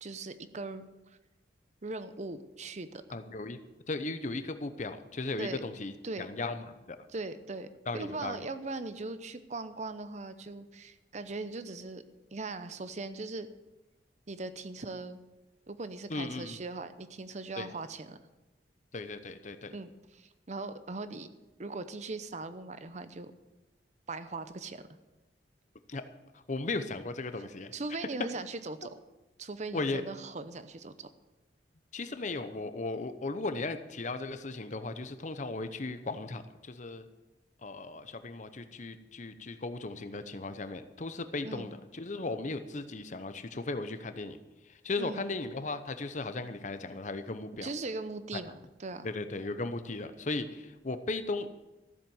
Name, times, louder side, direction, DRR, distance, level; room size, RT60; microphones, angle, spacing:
voice 1, 0.0-0.9 1.8-3.0 5.4-5.6 6.0-6.3 7.1-7.7 7.9-12.0 12.3-13.5 14.3-15.2 15.7-18.2 19.7-21.3 21.6-23.3 24.1-24.8 27.7-29.0 29.4-31.1 41.4-41.7 45.0-45.3 47.6-49.1, right 3 dB, 40° right, 12 dB, 0.7 m, -39 dB
voice 2, 3.1-3.6 3.9-7.0 7.9-8.4 16.1-16.6 17.6-17.7 18.9-19.7 25.9-26.0 26.3-27.7 29.7-30.0 31.9-37.1 37.6-44.4 44.7-47.7 48.3-48.4 49.0-51.5, left 3 dB, 45° left, 10 dB, 0.8 m, -36 dB
14.0 x 7.6 x 7.1 m, 1.1 s
head